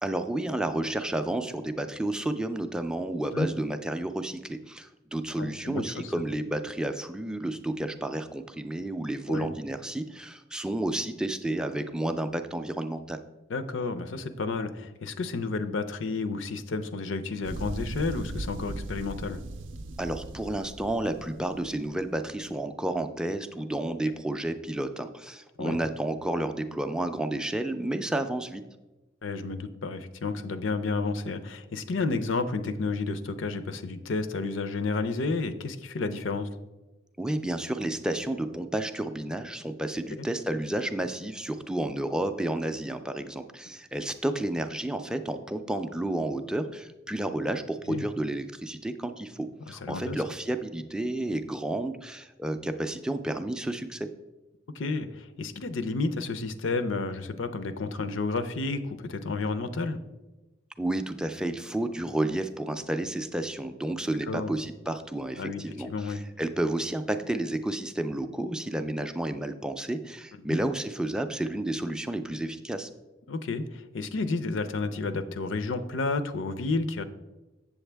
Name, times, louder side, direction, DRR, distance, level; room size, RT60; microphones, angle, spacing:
voice 1, 0.0-13.2 20.0-28.6 37.2-54.1 60.8-72.9, right 1 dB, 5° right, 7 dB, 0.3 m, -31 dB
voice 2, 5.4-6.1 9.3-9.5 13.5-19.4 25.6-25.8 29.2-36.5 47.9-48.0 49.8-50.2 54.7-60.0 64.3-64.5 65.4-66.2 73.3-77.0, left 3 dB, 85° left, 11 dB, 0.6 m, -31 dB
sound 1, 17.4-22.3, right 2 dB, 75° right, 0.4 m, -39 dB
8.0 x 7.1 x 3.4 m, 1.1 s
head